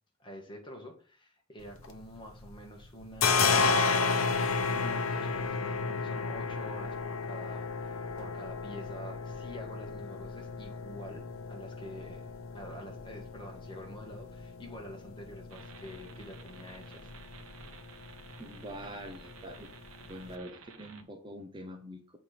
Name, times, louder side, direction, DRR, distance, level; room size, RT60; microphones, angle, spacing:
voice 1, 0.2-4.1 4.7-12.3 12.5-17.1, equal, 20° left, 1 dB, 1.7 m, -47 dB
sound 1, 1.6-2.6 2.8-20.3, left 4 dB, 65° left, 0.9 m, -33 dB
sound 2, 15.5-21.0, right 5 dB, 65° right, 1.1 m, -53 dB
voice 2, 18.4-19.7 20.1-22.2, equal, 20° right, 5 dB, 0.8 m, -44 dB
7.3 x 4.4 x 5.0 m, 0.39 s
head